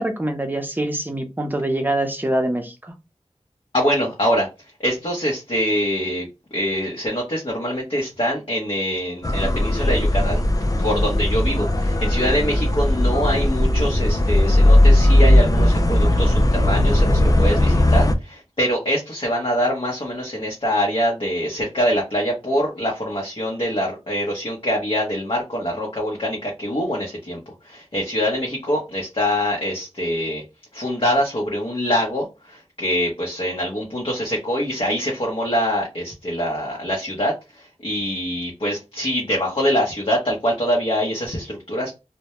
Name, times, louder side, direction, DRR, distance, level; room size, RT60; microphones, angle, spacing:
voice 1, 0.0-2.9, right 1 dB, 15° right, 5 dB, 0.6 m, -24 dB
voice 2, 3.7-4.5 4.8-6.3 6.5-10.5 10.8-30.4 30.7-41.9, equal, 50° left, -2 dB, 0.8 m, -24 dB
sound 1, 9.2-18.1, left 1 dB, 30° left, 0.4 m, -17 dB
2.1 x 2.1 x 2.9 m, 0.26 s
wide cardioid pair, 45°, 12 cm